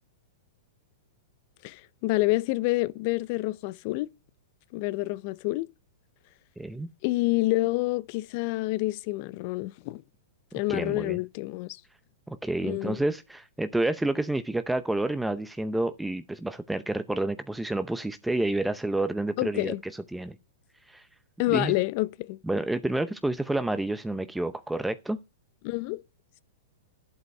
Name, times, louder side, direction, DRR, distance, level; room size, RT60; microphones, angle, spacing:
voice 1, 1.6-4.1 4.7-5.7 7.0-10.0 10.5-11.8 12.6-13.0 19.4-19.8 21.4-22.4 25.6-26.0, left 20 dB, 50° left, 0.6 m, -28 dB
voice 2, 6.6-6.9 10.7-11.2 12.3-19.7 20.1-20.3 20.9-21.1 21.5-21.7 22.4-25.2, right 2 dB, 5° right, 0.7 m, -29 dB
11.5 x 8.0 x 5.4 m
hypercardioid pair, 125°, 0 cm